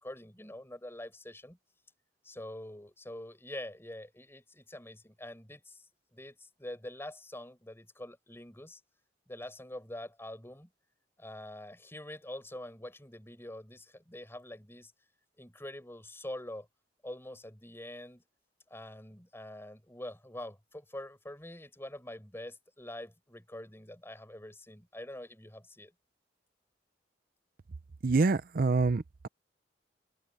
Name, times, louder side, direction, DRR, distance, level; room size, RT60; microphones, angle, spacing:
voice 1, 0.0-1.6 2.2-5.8 6.1-8.8 9.3-10.7 11.2-14.9 15.4-16.7 17.0-18.2 18.7-25.9, left 1 dB, 15° left, 5.0 m, -45 dB
voice 2, 28.0-29.3, right 3 dB, 55° right, 0.5 m, -26 dB
open air
head